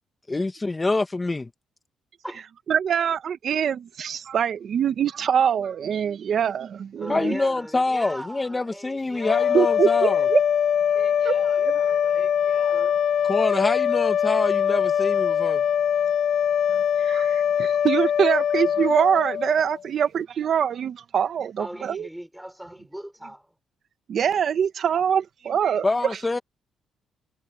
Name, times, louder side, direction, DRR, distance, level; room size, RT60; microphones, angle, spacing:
voice 1, 0.3-1.5 7.1-10.3 13.2-15.6 25.8-26.4, left 2 dB, 20° left, 1.9 m, -25 dB
voice 2, 2.7-7.3 9.5-10.4 11.2-11.4 17.0-22.1 24.1-25.9, right 8 dB, 60° right, 1.7 m, -24 dB
voice 3, 7.0-9.8 10.1-10.2 10.9-13.0 21.6-23.5, right 1 dB, 5° right, 6.4 m, -40 dB
sound 1, 9.2-19.8, left 8 dB, 65° left, 2.6 m, -22 dB
cardioid pair, 90°, 0 cm